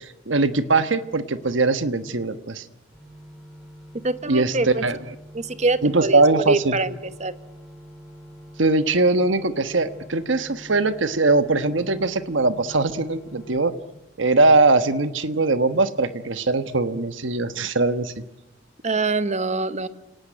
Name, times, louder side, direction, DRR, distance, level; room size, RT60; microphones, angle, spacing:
voice 1, 0.0-2.6 4.3-5.0 5.8-6.8 8.6-13.7 14.2-18.1, right 3 dB, 75° right, 11 dB, 1.3 m, -21 dB
sound 1, 2.9-13.6, equal, 5° left, 5.0 m, -45 dB
voice 2, 4.0-4.8 5.3-6.9 7.2-7.3 18.8-19.9, right 3 dB, 35° right, 12 dB, 1.2 m, -24 dB
30.0 x 18.5 x 9.2 m, 0.91 s
head